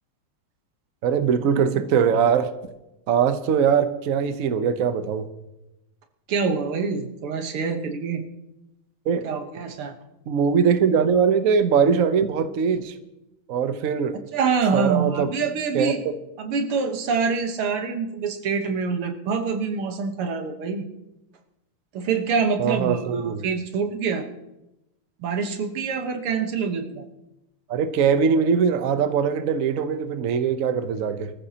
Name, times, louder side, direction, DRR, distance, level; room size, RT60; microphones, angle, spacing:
voice 1, 1.0-2.5 3.1-5.3 9.1-9.2 10.3-12.9 13.5-14.2 14.7-15.3 15.7-16.1 22.6-23.4 27.7-31.3, right 6 dB, 55° right, 10 dB, 1.0 m, -21 dB
voice 2, 6.3-8.2 9.2-10.0 14.3-16.0 16.4-20.8 21.9-24.3 25.2-27.1, right 5 dB, 90° right, 5 dB, 2.2 m, -25 dB
23.0 x 14.0 x 2.9 m, 0.93 s
omnidirectional pair, 2.3 m